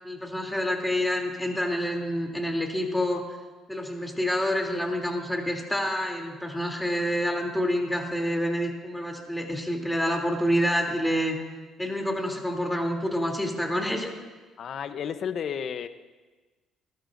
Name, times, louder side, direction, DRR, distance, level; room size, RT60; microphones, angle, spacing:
voice 1, 0.0-3.2 3.7-11.4 11.8-14.1, equal, 5° left, 1 dB, 3.1 m, -27 dB
voice 2, 14.6-15.9, left 7 dB, 60° left, 11 dB, 0.8 m, -32 dB
26.5 x 13.5 x 2.6 m, 1.3 s
supercardioid pair, 70°, 0 cm